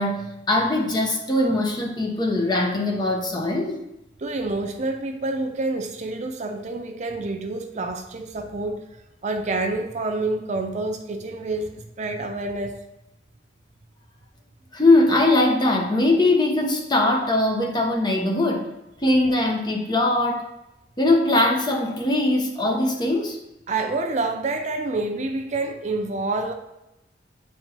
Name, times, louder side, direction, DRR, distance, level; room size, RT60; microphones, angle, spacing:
voice 1, 0.0-3.8 14.7-18.7 19.0-20.5 21.0-23.4, left 2 dB, 25° left, 1 dB, 0.9 m, -21 dB
voice 2, 4.2-8.8 9.2-12.8 23.7-26.5, right 2 dB, 40° right, 6 dB, 0.5 m, -28 dB
8.9 x 4.4 x 2.9 m, 0.91 s
head